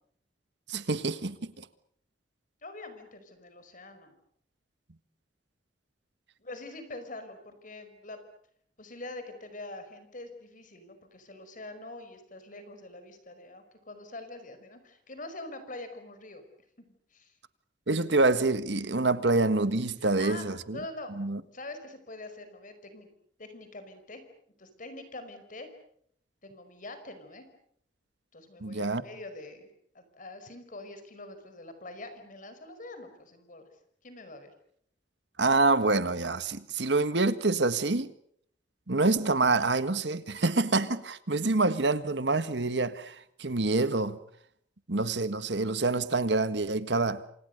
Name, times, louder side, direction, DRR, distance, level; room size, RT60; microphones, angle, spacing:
voice 1, 0.7-1.7 17.9-20.8 21.2-21.4 28.6-29.0 35.4-38.1 38.9-44.2 44.9-47.2, right 3 dB, 70° right, 1.7 m, -26 dB
voice 2, 2.6-4.2 6.4-8.2 8.8-16.4 16.8-16.9 17.1-17.4 20.2-20.5 20.7-21.2 21.5-23.1 23.4-24.2 24.6-25.7 26.4-27.5 28.3-29.7 29.9-33.7 34.0-34.5, left 2 dB, 45° left, 5.2 m, -44 dB
27.5 x 27.5 x 6.7 m
head